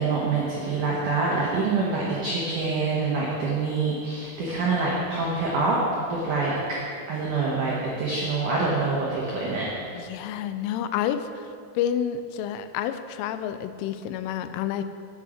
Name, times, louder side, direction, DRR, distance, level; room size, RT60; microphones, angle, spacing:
voice 1, 0.0-5.8 6.1-6.8 7.1-9.9, right 3 dB, 80° right, -5 dB, 1.8 m, -26 dB
voice 2, 9.9-11.5 11.8-14.8, left 9 dB, 90° left, 10 dB, 3.1 m, -29 dB
9.0 x 8.8 x 5.0 m, 2.4 s
omnidirectional pair, 5.6 m